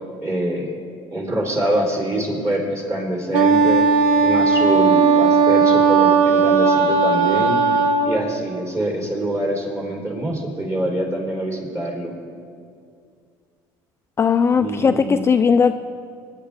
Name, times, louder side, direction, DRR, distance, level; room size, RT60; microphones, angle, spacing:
voice 1, 0.2-0.8 1.1-3.9 4.2-7.6 8.0-12.1 14.6-15.2, right 1 dB, 25° right, -2 dB, 4.2 m, -25 dB
Wind instrument woodwind instrument, 3.3-8.2, right 5 dB, 75° right, 1.1 m, -16 dB
voice 2, 14.2-15.7, left 6 dB, 25° left, 8 dB, 0.3 m, -17 dB
22.5 x 10.5 x 3.7 m, 2.3 s
supercardioid pair, 100°, 11 cm